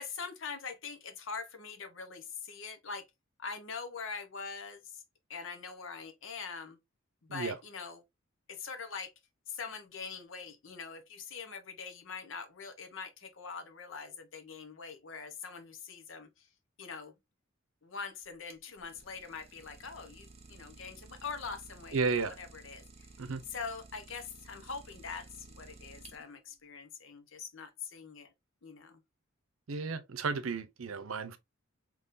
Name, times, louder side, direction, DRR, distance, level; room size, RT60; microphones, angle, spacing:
voice 1, 0.0-3.0 3.4-5.0 5.3-6.8 7.2-8.0 8.5-9.1 9.5-16.5 16.8-17.1 17.8-23.1 23.5-28.3 28.6-29.0, left 5 dB, 65° left, 0.9 m, -43 dB
Idling, 18.2-26.5, right 3 dB, 30° right, 0.7 m, -54 dB
voice 2, 21.9-22.3 23.2-23.4 29.7-31.4, right 4 dB, 80° right, 0.6 m, -33 dB
3.7 x 3.0 x 2.6 m
head